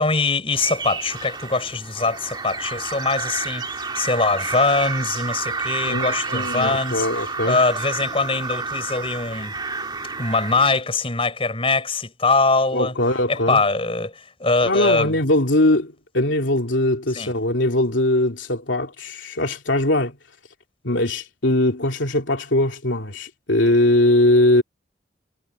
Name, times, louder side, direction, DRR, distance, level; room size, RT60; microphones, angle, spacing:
voice 1, 0.0-7.1 7.4-9.5 10.2-12.9 13.3-15.1 17.1-17.3, left 3 dB, 30° left, 5.0 m, -22 dB
sound 1, 0.5-10.8, right 4 dB, 25° right, 2.1 m, -30 dB
voice 2, 5.8-7.6 12.7-13.6 14.6-20.2 20.8-24.6, left 1 dB, 90° left, 2.9 m, -21 dB
head